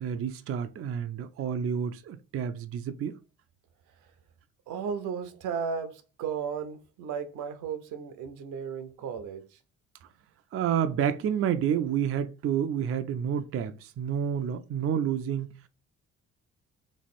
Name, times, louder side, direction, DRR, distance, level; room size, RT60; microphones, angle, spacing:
voice 1, 0.0-3.2 10.5-15.5, right 8 dB, 50° right, 0.4 m, -29 dB
voice 2, 4.7-9.6, right 6 dB, 80° right, 0.7 m, -35 dB
3.4 x 3.1 x 4.1 m
cardioid pair, 90°, 30 cm